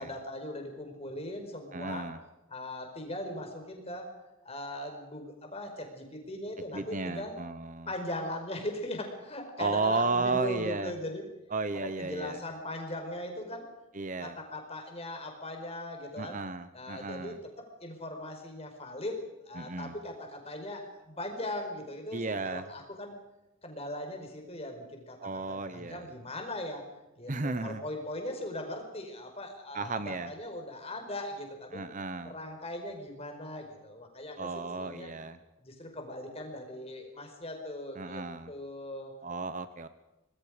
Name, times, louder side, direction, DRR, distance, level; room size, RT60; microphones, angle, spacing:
voice 1, 0.0-2.1 2.5-4.1 4.4-7.3 7.9-11.2 11.8-13.7 14.2-16.4 16.7-23.2 23.6-26.8 27.1-31.8 32.2-35.1 35.6-38.2 38.5-39.1, left 1 dB, 30° left, 4 dB, 4.8 m, -39 dB
voice 2, 1.7-2.2 6.7-7.9 9.6-10.9 11.5-12.4 13.9-14.4 16.2-17.4 19.6-19.9 22.1-22.7 25.2-26.1 27.3-27.8 29.7-30.3 31.7-32.3 34.4-35.4 38.0-38.5 39.2-39.9, right 3 dB, 35° right, 12 dB, 0.9 m, -33 dB
25.5 x 21.0 x 5.1 m, 1.0 s
head